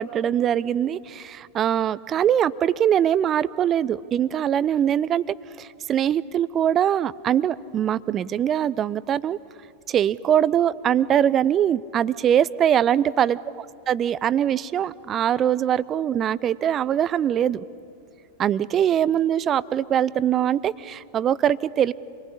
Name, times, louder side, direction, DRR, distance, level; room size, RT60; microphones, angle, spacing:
voice 1, 0.0-9.4 9.9-13.4 13.9-17.6 18.4-21.9, right 10 dB, 30° right, 19 dB, 0.6 m, -22 dB
27.5 x 20.5 x 9.9 m, 2.4 s
figure-of-eight pair, 90°, 0 cm